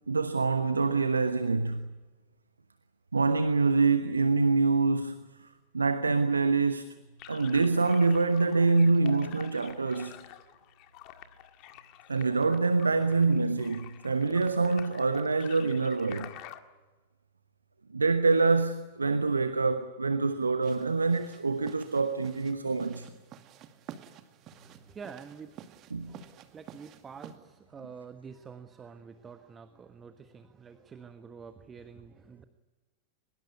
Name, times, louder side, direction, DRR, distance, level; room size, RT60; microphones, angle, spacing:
voice 1, 0.1-1.8 3.1-5.5 5.7-7.0 7.3-10.2 12.1-16.4 17.9-23.1 25.9-26.1, right 4 dB, 75° right, 1.1 m, -26 dB
sound 1, 7.2-16.6, left 13 dB, 40° left, 1.8 m, -49 dB
sound 2, 20.6-27.4, right 10 dB, 35° right, 2.2 m, -50 dB
voice 2, 24.5-25.5 25.9-32.4, right 6 dB, 20° right, 1.4 m, -48 dB
24.0 x 21.5 x 9.6 m
figure-of-eight pair, 90°, 0 cm